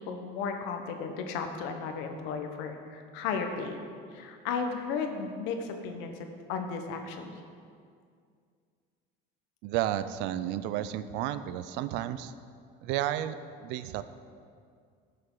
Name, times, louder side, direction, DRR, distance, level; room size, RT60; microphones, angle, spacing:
voice 1, 0.0-3.8 4.1-7.3, left 5 dB, 75° left, 5 dB, 1.1 m, -34 dB
voice 2, 9.6-12.3 12.8-13.4 13.6-14.0, right 12 dB, 70° right, 13 dB, 0.5 m, -32 dB
12.5 x 6.7 x 3.9 m, 2.2 s
cardioid pair, 135°, 19 cm